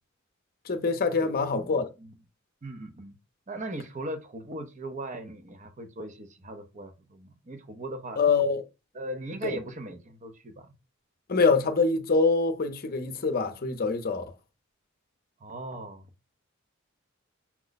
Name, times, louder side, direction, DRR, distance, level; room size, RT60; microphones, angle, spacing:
voice 1, 0.7-1.9 8.2-8.6 9.5-9.6 11.3-14.3, left 4 dB, 45° left, 0.6 m, -25 dB
voice 2, 1.2-2.2 2.6-3.2 3.5-8.2 8.9-10.7 15.4-16.1, right 1 dB, 35° right, 0.7 m, -39 dB
5.9 x 2.1 x 3.9 m
head